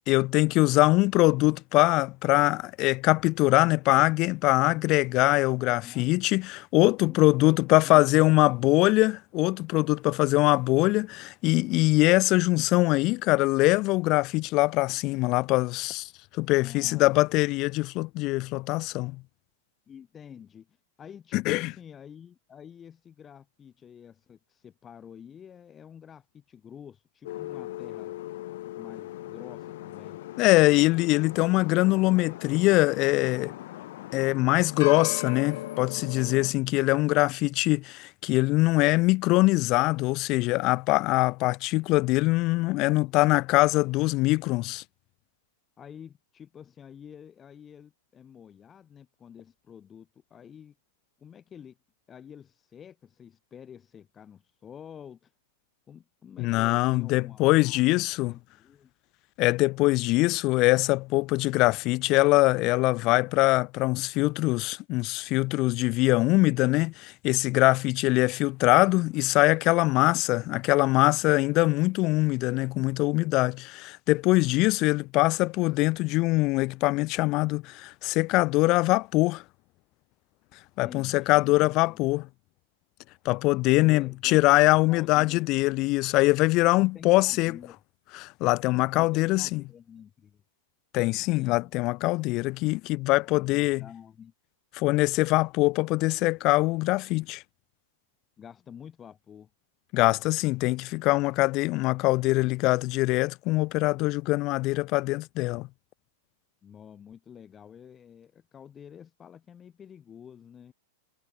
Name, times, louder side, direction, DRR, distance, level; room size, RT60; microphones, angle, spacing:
voice 1, 0.1-19.2 21.3-21.7 30.4-33.5 34.1-44.8 56.4-58.4 59.4-79.4 80.8-82.3 83.3-87.6 88.1-89.6 90.9-93.8 94.7-97.4 99.9-105.7, left 22 dB, 45° left, 0.3 m, -23 dB
voice 2, 5.6-6.2 7.0-8.1 8.5-8.7 16.6-17.2 19.9-28.2 28.8-30.2 42.9-43.2 45.8-50.7 51.2-51.8 52.1-55.3 55.9-57.8 58.3-58.9 80.8-82.0 83.8-85.5 86.7-87.8 88.9-90.4 91.3-91.7 93.1-94.3 98.4-99.5 106.6-110.7, left 8 dB, 25° left, 4.4 m, -48 dB
sound 1, 27.2-36.5, left 16 dB, 60° left, 1.0 m, -38 dB
hypercardioid pair, 100°, 0 cm